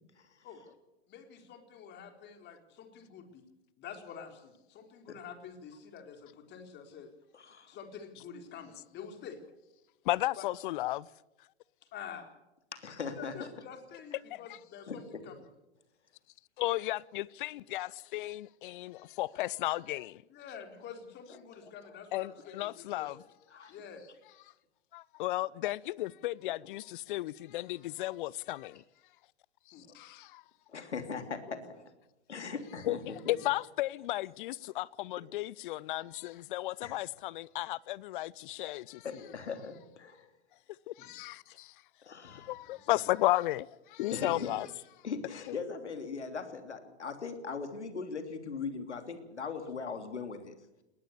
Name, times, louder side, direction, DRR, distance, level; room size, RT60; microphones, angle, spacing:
voice 1, 1.1-3.4 3.8-7.1 7.7-9.4 10.4-10.5 11.9-12.3 13.1-15.4 20.3-23.1 23.7-24.1 29.7-29.9 31.5-31.6 41.0-41.1 42.6-42.9, left 7 dB, 30° left, 4.3 m, -48 dB
voice 2, 7.3-7.8 12.7-13.5 14.9-15.0 21.6-21.7 23.5-23.7 30.7-31.8 32.3-33.3 36.8-37.0 39.0-40.3 42.0-42.5 44.1-44.5 45.0-50.5, left 5 dB, 80° left, 3.2 m, -39 dB
voice 3, 10.0-11.1 14.3-14.6 16.6-20.2 22.1-23.2 24.9-28.8 29.7-30.4 32.8-33.0 33.3-39.3 40.9-41.8 42.2-44.7 45.5-45.6, left 17 dB, 50° left, 0.7 m, -34 dB
20.5 x 19.5 x 6.9 m
hypercardioid pair, 105°, 34 cm